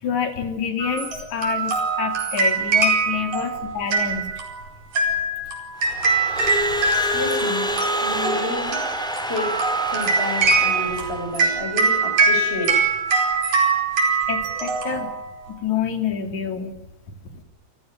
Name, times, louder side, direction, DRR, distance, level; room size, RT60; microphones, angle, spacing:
voice 1, 0.0-4.3 14.3-15.1 15.5-16.7, left 7 dB, 75° left, 6 dB, 4.3 m, -27 dB
sound 1, 0.8-15.5, right 4 dB, 70° right, 6.0 m, -23 dB
Crowd / Alarm, 5.8-11.3, equal, ahead, 3.3 m, -27 dB
voice 2, 7.1-8.8 9.3-9.6 9.9-12.8, left 1 dB, 20° left, 4 dB, 7.5 m, -30 dB
28.0 x 16.0 x 9.4 m, 1.0 s
omnidirectional pair, 3.4 m